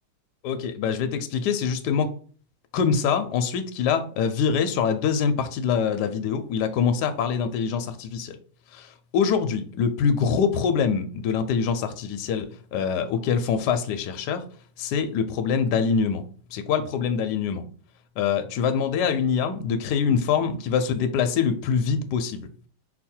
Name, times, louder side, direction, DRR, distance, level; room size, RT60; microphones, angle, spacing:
voice 1, 0.4-2.1 2.7-8.4 8.7-8.9 9.1-14.4 14.8-16.2 16.5-17.6 18.2-22.5, left 6 dB, 75° left, 8 dB, 1.0 m, -24 dB
5.5 x 2.2 x 4.3 m, 0.43 s
omnidirectional pair, 2.3 m